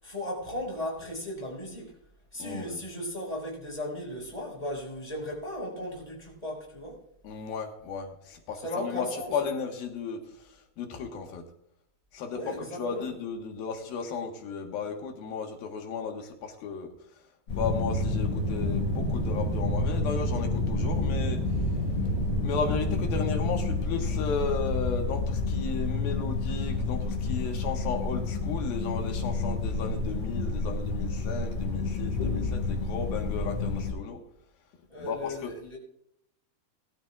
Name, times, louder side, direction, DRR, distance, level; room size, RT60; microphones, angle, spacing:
voice 1, 0.0-2.0 2.3-7.0 8.6-9.4 12.3-13.1 34.9-35.8, left 1 dB, 10° left, -2 dB, 5.2 m, -36 dB
voice 2, 2.4-2.8 7.2-9.1 9.3-11.4 12.1-16.9 17.5-21.5 22.4-34.2 35.0-35.6, left 5 dB, 70° left, 3 dB, 3.2 m, -34 dB
sound 1, 17.5-33.9, left 4 dB, 35° left, 4.9 m, -30 dB
sound 2, 17.6-23.9, right 2 dB, 80° right, 3.9 m, -31 dB
21.5 x 12.5 x 2.5 m, 0.73 s
omnidirectional pair, 4.6 m